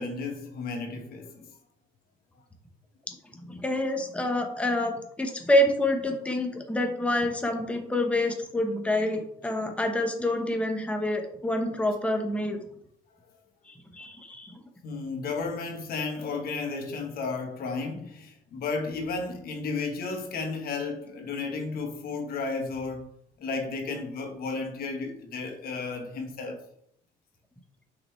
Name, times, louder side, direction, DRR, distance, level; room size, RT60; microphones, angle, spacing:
voice 1, 0.0-1.5 14.8-23.1 23.4-26.6, left 4 dB, 60° left, 1.3 m, -33 dB
voice 2, 3.5-12.6 13.7-14.5, left 1 dB, 5° left, 1.0 m, -27 dB
6.7 x 5.3 x 3.2 m
cardioid pair, 110°, 17 cm